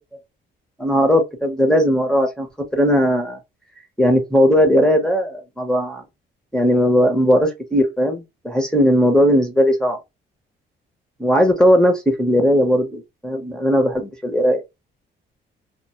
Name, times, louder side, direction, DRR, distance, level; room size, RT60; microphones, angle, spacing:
voice 1, 0.8-2.5 2.7-3.4 4.0-6.0 6.5-10.0 11.2-14.6, equal, 5° left, 0.7 m, -17 dB
2.1 x 2.0 x 2.8 m
cardioid pair, 90°, 20 cm